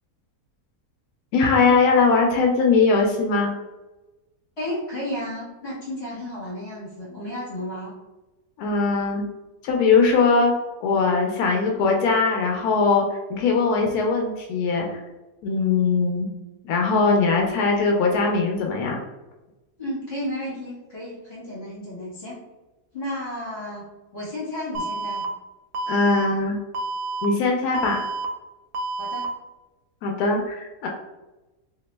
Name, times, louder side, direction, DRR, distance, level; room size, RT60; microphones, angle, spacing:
voice 1, 1.3-3.5 8.6-9.3 9.6-10.5 10.8-15.0 15.4-16.3 16.6-19.0 25.9-26.6 27.2-28.1 30.0-30.9, left 4 dB, 90° left, 1 dB, 1.1 m, -20 dB
voice 2, 4.6-7.9 19.8-22.4 22.9-25.3 29.0-29.3, left 1 dB, 45° left, -7 dB, 1.8 m, -33 dB
Alarm, 24.7-25.2 25.7-26.2 26.7-27.2 27.7-28.2 28.7-29.2, right 2 dB, 85° right, 1.1 m, -29 dB
2.9 x 2.9 x 3.2 m, 1.1 s
omnidirectional pair, 1.6 m